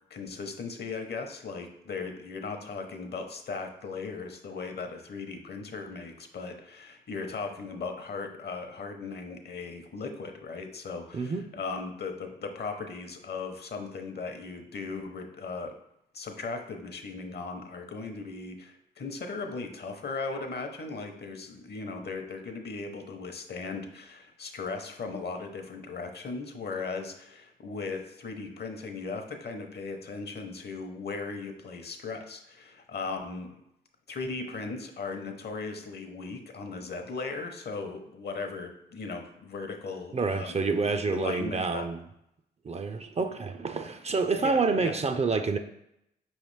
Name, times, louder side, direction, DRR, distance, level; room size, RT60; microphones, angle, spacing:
voice 1, 0.1-15.7 16.1-33.6 34.1-40.6 41.1-41.9 44.4-44.9, left 4 dB, 55° left, 5 dB, 0.8 m, -37 dB
voice 2, 40.1-42.0 42.6-45.6, right 4 dB, 35° right, 8 dB, 0.4 m, -28 dB
4.9 x 3.1 x 3.2 m, 0.80 s
supercardioid pair, 50°, 20 cm